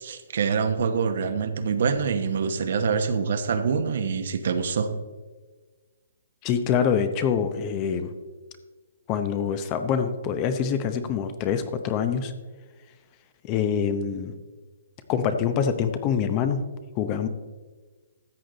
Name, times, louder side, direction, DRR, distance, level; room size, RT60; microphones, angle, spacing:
voice 1, 0.0-4.9, right 5 dB, 60° right, 8 dB, 1.1 m, -25 dB
voice 2, 6.4-8.1 9.1-12.3 13.4-14.3 15.1-16.6 17.0-17.3, left 7 dB, 25° left, 9 dB, 0.7 m, -25 dB
13.5 x 7.8 x 3.9 m, 1.3 s
hypercardioid pair, 155°, 0 cm